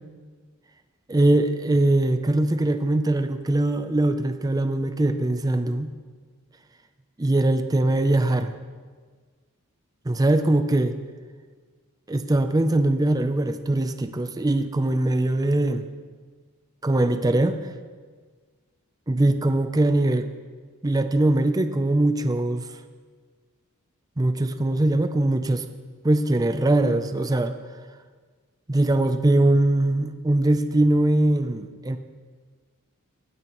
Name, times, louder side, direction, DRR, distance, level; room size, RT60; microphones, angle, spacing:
voice 1, 1.1-5.9 7.2-8.5 10.1-11.0 12.1-15.9 16.8-17.6 19.1-20.3 20.8-22.7 24.2-25.6 26.0-27.5 28.7-32.0, right 1 dB, 15° right, 9 dB, 0.4 m, -21 dB
18.5 x 9.5 x 3.0 m, 1.5 s
head